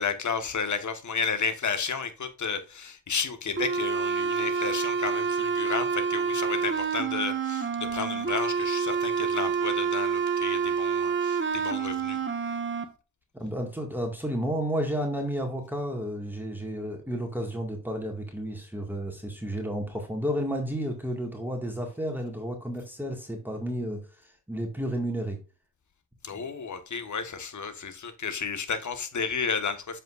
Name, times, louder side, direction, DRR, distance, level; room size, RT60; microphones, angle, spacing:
voice 1, 0.0-12.2 26.2-30.0, left 5 dB, 40° left, 1.5 m, -32 dB
sound 1, 3.6-12.8, right 6 dB, 25° right, 1.4 m, -28 dB
voice 2, 13.3-25.4 26.3-26.4, equal, 5° right, 2.1 m, -32 dB
7.3 x 5.5 x 2.6 m
supercardioid pair, 60°, 45 cm